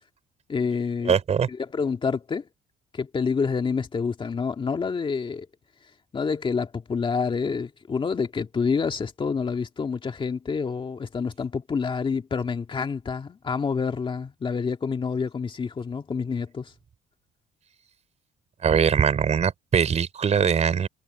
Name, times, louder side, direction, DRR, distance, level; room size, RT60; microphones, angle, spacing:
voice 1, 0.5-1.1 1.5-2.5 2.9-5.5 6.1-16.7, left 5 dB, 30° left, 2.2 m, -28 dB
voice 2, 1.1-1.5 18.6-20.9, right 7 dB, 40° right, 4.1 m, -21 dB
cardioid pair, 110°, 17 cm